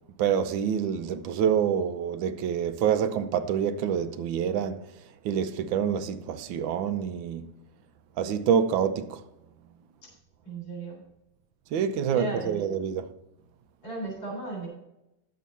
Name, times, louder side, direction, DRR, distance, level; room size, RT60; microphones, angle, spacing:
voice 1, 0.2-4.8 5.2-7.5 8.2-9.2 11.7-13.1, right 8 dB, 85° right, 1.5 m, -27 dB
voice 2, 10.4-11.0 11.9-12.8 13.8-14.7, right 2 dB, 65° left, 4.4 m, -36 dB
11.0 x 7.3 x 4.1 m
omnidirectional pair, 2.0 m